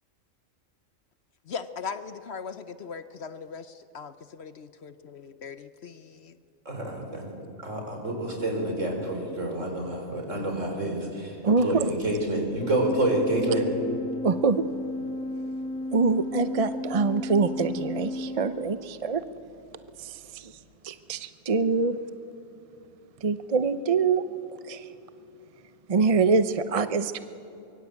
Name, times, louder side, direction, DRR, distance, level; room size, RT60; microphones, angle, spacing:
voice 1, 1.5-6.0, left 6 dB, 55° left, 1.0 m, -39 dB
voice 2, 6.7-7.3 7.6-13.7, right 1 dB, 65° right, 4.7 m, -28 dB
voice 3, 11.4-11.9 14.2-14.7 15.9-19.2 20.0-20.5 20.8-22.0 23.2-24.2 24.7-24.9 25.9-27.2, right 4 dB, 35° right, 0.6 m, -25 dB
Organ, 12.6-19.1, left 2 dB, 80° left, 1.6 m, -34 dB
24.0 x 22.5 x 8.3 m
omnidirectional pair, 1.4 m